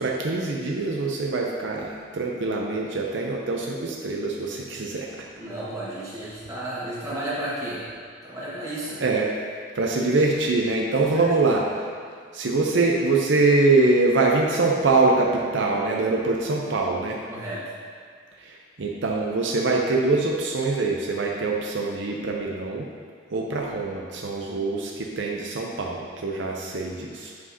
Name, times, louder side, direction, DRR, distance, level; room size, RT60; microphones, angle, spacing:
voice 1, 0.0-5.3 9.0-9.3 9.7-11.6 12.3-17.2 18.4-22.9 23.3-27.3, right 3 dB, 70° right, -1 dB, 0.6 m, -24 dB
voice 2, 5.4-7.8 8.2-9.0 11.0-11.5 17.3-17.6, right 1 dB, 15° right, -9 dB, 1.4 m, -33 dB
8.3 x 4.9 x 2.7 m, 2.1 s
head